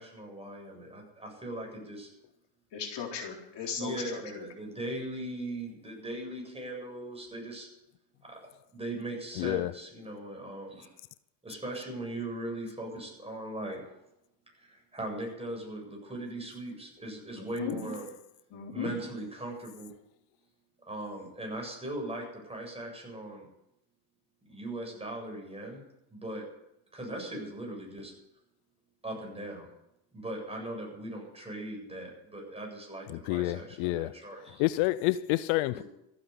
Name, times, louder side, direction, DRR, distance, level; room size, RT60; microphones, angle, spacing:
voice 1, 0.0-2.1 3.8-7.7 8.2-8.4 8.7-11.0 11.4-14.0 14.6-18.1 18.7-19.9 20.9-23.5 24.5-25.8 26.1-26.5 26.9-28.1 29.0-29.7 30.1-34.6 35.7-35.8, right 1 dB, 10° right, 7.9 m, -39 dB
voice 2, 2.7-4.5 17.4-17.8 18.5-18.9, left 6 dB, 60° left, 4.0 m, -37 dB
voice 3, 9.4-9.7 33.1-34.1 34.6-35.8, left 17 dB, 80° left, 0.6 m, -28 dB
14.5 x 9.4 x 9.8 m
supercardioid pair, 95°, 47 cm